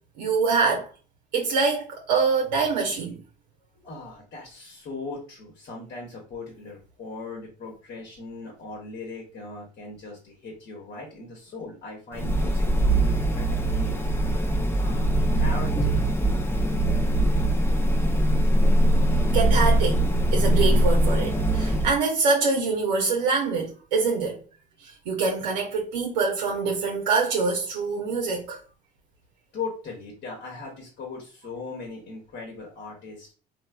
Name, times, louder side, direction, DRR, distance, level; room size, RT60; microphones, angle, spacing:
voice 1, 0.2-0.9 1.3-3.2 19.3-20.0 20.3-24.4 24.8-28.6, right 4 dB, 90° right, 0.6 m, -25 dB
voice 2, 3.7-14.0 14.8-16.0 29.5-33.3, left 3 dB, 50° left, 1.0 m, -39 dB
sound 1, 12.1-22.0, right 1 dB, 10° left, 0.5 m, -22 dB
3.1 x 2.2 x 2.2 m
hypercardioid pair, 80°, 21 cm